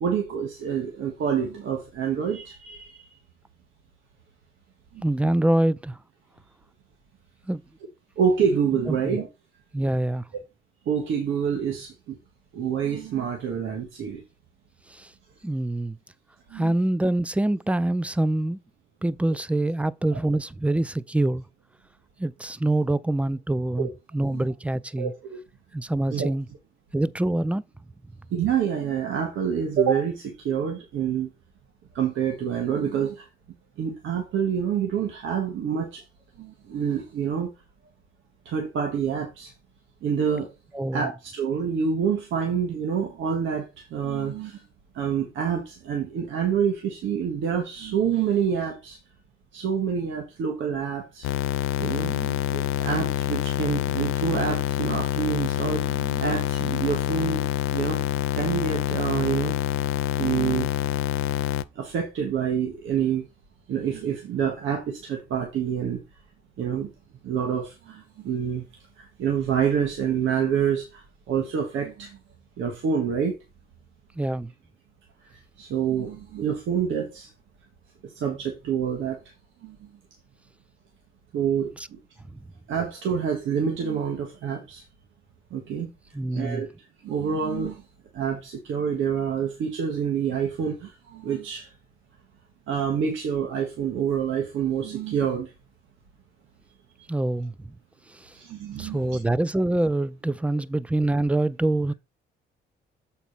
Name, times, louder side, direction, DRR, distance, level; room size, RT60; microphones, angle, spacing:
voice 1, 0.0-3.2 4.9-5.0 8.2-9.3 10.9-12.2 12.5-14.2 16.5-16.7 23.8-23.9 24.3-24.4 25.0-25.4 26.1-26.3 28.3-31.3 31.9-33.3 33.8-36.1 36.4-37.5 38.5-39.5 40.0-40.5 40.9-44.6 44.9-49.0 49.5-51.3 51.8-57.4 57.7-58.0 58.3-59.6 60.2-60.7 61.8-63.3 63.7-66.0 66.6-66.9 67.2-68.7 69.0-72.2 72.6-73.4 75.2-77.3 78.0-79.2 79.6-79.9 81.3-82.0 82.7-84.8 85.5-85.9 86.3-87.8 88.1-91.7 92.7-95.5 98.3-99.2, right 7 dB, 80° right, 1.6 m, -27 dB
voice 2, 5.0-6.0 7.5-7.6 8.9-9.2 9.7-10.2 14.9-15.1 15.4-16.0 16.5-18.6 19.0-21.4 22.2-25.1 25.7-26.5 26.9-27.6 40.7-41.1 74.2-74.5 81.8-81.9 82.3-82.4 86.1-86.7 97.1-97.8 98.1-98.3 98.8-101.9, right 1 dB, 5° right, 0.5 m, -25 dB
sound 1, 51.2-61.6, left 12 dB, 90° left, 0.5 m, -26 dB
7.3 x 4.1 x 5.4 m
cardioid pair, 90°, 20 cm